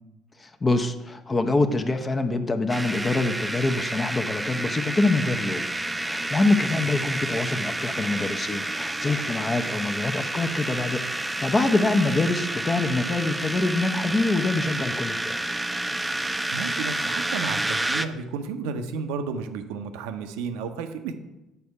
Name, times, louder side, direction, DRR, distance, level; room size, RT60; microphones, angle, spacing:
voice 1, 0.4-5.7 6.0-15.3, left 2 dB, 25° left, 7 dB, 0.7 m, -25 dB
sound 1, 2.7-18.1, right 1 dB, 10° right, 0.5 m, -29 dB
voice 2, 16.5-21.2, right 5 dB, 70° right, 8 dB, 0.6 m, -32 dB
8.1 x 4.3 x 4.8 m, 0.99 s
hypercardioid pair, 55°, 0 cm